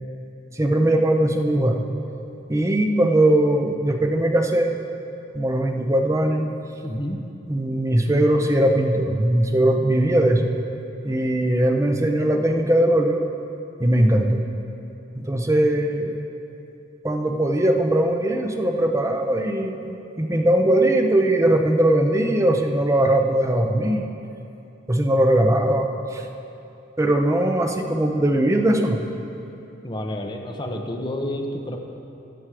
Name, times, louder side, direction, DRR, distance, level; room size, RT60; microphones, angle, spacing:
voice 1, 0.5-1.8 2.5-4.7 5.3-6.5 7.5-10.5 11.0-13.2 13.8-14.4 15.1-16.2 17.0-24.0 24.9-26.2 27.0-29.0, right 1 dB, 15° right, 4 dB, 0.7 m, -20 dB
voice 2, 6.8-7.2 29.8-31.8, left 1 dB, 25° left, 2 dB, 0.9 m, -29 dB
16.0 x 6.2 x 4.9 m, 2.8 s
head